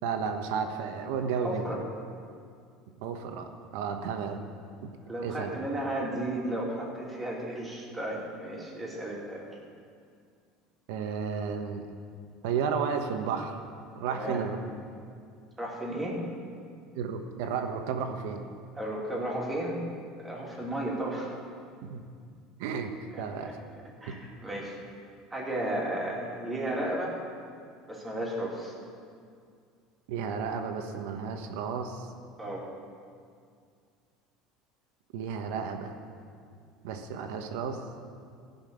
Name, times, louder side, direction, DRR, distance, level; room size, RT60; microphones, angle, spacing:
voice 1, 0.0-1.7 3.0-4.4 4.8-4.9 5.2-5.5 10.9-11.9 12.4-13.6 13.9-14.6 16.9-18.4 21.8-22.0 22.6-23.6 24.1-24.2 30.1-32.1 35.1-35.9 36.8-37.8, right 6 dB, 80° right, 5 dB, 1.2 m, -32 dB
voice 2, 1.4-1.8 5.0-9.5 14.1-14.4 15.6-16.2 18.8-19.8 20.2-21.3 23.1-23.2 23.5-23.6 24.0-24.7 25.3-27.2 27.9-28.7 32.4-32.7, right 1 dB, 15° right, -3 dB, 2.8 m, -34 dB
15.0 x 5.7 x 8.2 m, 2.2 s
supercardioid pair, 130°, 0 cm